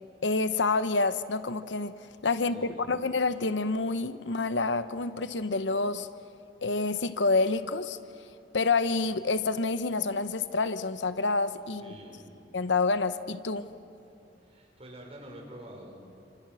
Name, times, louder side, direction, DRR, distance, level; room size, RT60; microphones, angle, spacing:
voice 1, 0.2-1.9 2.2-6.1 6.6-8.0 8.5-11.9 12.5-13.7, left 3 dB, 80° left, 12 dB, 0.9 m, -28 dB
voice 2, 2.3-3.0 11.8-12.4 14.4-16.1, equal, 35° right, 0 dB, 5.7 m, -47 dB
29.5 x 27.0 x 6.3 m, 2.6 s
head